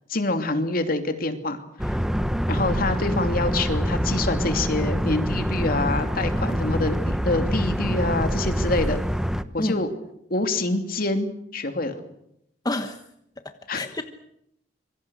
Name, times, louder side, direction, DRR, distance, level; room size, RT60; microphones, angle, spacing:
voice 1, 0.1-1.9 2.5-9.0 9.5-9.9 10.3-12.0 13.7-13.8, left 2 dB, 55° left, 7 dB, 2.9 m, -26 dB
sound 1, 1.8-9.4, equal, 5° right, 1.0 m, -25 dB
voice 2, 12.6-13.0 13.4-14.0, left 1 dB, 20° left, 7 dB, 1.2 m, -28 dB
26.5 x 24.0 x 6.5 m, 0.76 s
head